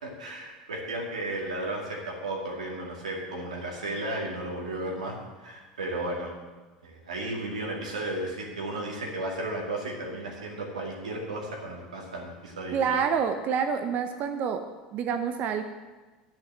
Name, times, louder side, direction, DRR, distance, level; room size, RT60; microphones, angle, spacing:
voice 1, 0.0-6.3 6.8-13.0, right 1 dB, 85° right, -2 dB, 2.3 m, -34 dB
voice 2, 12.7-14.6 14.9-15.6, right 7 dB, 50° right, 7 dB, 0.7 m, -27 dB
10.5 x 6.0 x 7.5 m, 1.2 s
hypercardioid pair, 80°, 4 cm